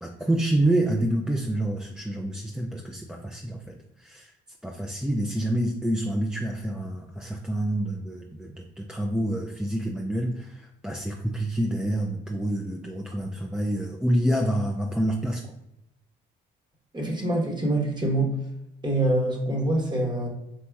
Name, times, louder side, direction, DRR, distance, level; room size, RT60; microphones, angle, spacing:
voice 1, 0.0-4.3 4.6-15.4, right 1 dB, 5° right, 0 dB, 0.3 m, -27 dB
voice 2, 16.9-18.3 18.8-20.3, right 1 dB, 20° right, 0 dB, 1.0 m, -25 dB
4.3 x 2.8 x 2.3 m, 0.87 s
cardioid pair, 90°, 20 cm